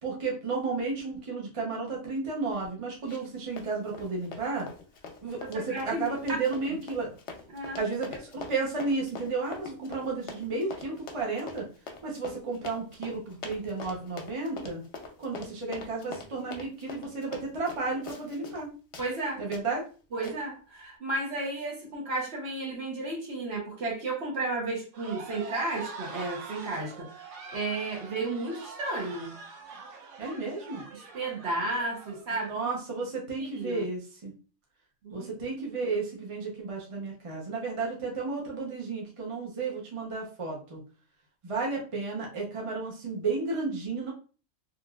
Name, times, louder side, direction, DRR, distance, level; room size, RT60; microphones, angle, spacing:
voice 1, 0.0-4.7 5.2-7.1 7.8-11.6 12.0-14.8 15.2-18.7 19.4-19.8 30.2-30.8 32.3-34.3 35.1-40.8 41.4-44.1, right 3 dB, 30° right, -2 dB, 0.6 m, -33 dB
Run, 3.1-3.3 3.6-18.6 18.9-19.1 19.5-19.6 20.2-20.4, left 4 dB, 65° left, 0.8 m, -43 dB
voice 2, 5.4-6.0 7.5-7.8 19.0-19.4 20.1-29.4 30.9-32.5 33.4-33.8 35.0-35.3, right 2 dB, 55° right, -1 dB, 1.1 m, -33 dB
sound 1, 24.9-32.5, right 4 dB, 85° right, 1.1 m, -44 dB
3.1 x 2.6 x 2.3 m, 0.36 s
omnidirectional pair, 1.4 m